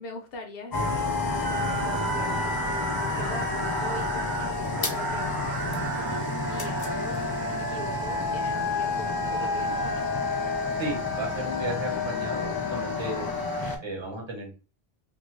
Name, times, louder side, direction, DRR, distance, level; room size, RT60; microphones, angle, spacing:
voice 1, 0.0-2.4 3.1-10.1, left 2 dB, 65° left, 4 dB, 1.0 m, -41 dB
sound 1, 0.7-13.8, left 3 dB, 30° left, 0.4 m, -29 dB
sound 2, 1.4-7.6, right 5 dB, 85° right, 0.9 m, -37 dB
voice 2, 10.8-13.3 13.8-14.5, right 2 dB, 25° right, -1 dB, 1.1 m, -34 dB
2.7 x 2.6 x 2.9 m, 0.33 s
omnidirectional pair, 1.1 m